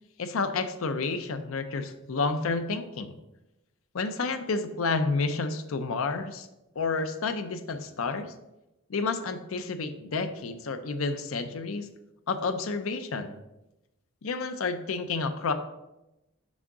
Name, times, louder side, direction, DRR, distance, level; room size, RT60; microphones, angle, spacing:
voice 1, 0.2-3.1 3.9-6.5 6.8-8.3 8.9-11.9 12.3-13.4 14.2-15.5, left 4 dB, 75° left, 9 dB, 0.6 m, -30 dB
6.2 x 3.6 x 4.8 m, 0.95 s
head